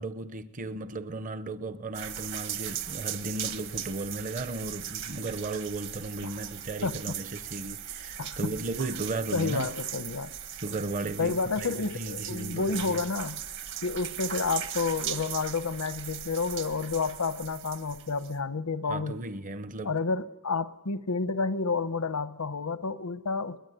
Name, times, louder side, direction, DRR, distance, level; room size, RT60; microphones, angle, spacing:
voice 1, 0.0-9.7 10.6-13.0 18.9-20.0, right 2 dB, 35° right, 0.8 m, -35 dB
sound 1, 1.9-18.4, right 9 dB, 55° right, 1.4 m, -38 dB
voice 2, 6.8-7.1 8.2-8.5 9.3-10.3 11.2-13.4 13.8-19.2 19.8-23.6, left 4 dB, 85° left, 1.0 m, -30 dB
22.0 x 20.5 x 9.3 m
head